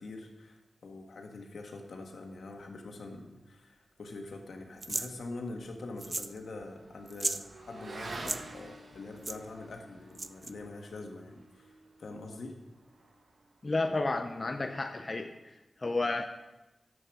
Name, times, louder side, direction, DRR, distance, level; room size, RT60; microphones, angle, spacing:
voice 1, 0.0-11.7 12.0-12.6, left 2 dB, 80° left, 3 dB, 1.6 m, -44 dB
sound 1, 4.8-5.1 6.0-6.4 6.6-6.7 7.1-7.4 8.1-8.4 9.2-9.4 10.1-10.5, right 3 dB, 40° right, 0.5 m, -34 dB
Motorcycle / Accelerating revving vroom, 5.1-13.8, right 2 dB, 60° right, 1.2 m, -49 dB
voice 2, 13.6-16.2, left 2 dB, 40° left, 5 dB, 0.7 m, -32 dB
11.0 x 7.9 x 6.0 m, 1.0 s
wide cardioid pair, 80°, 0 cm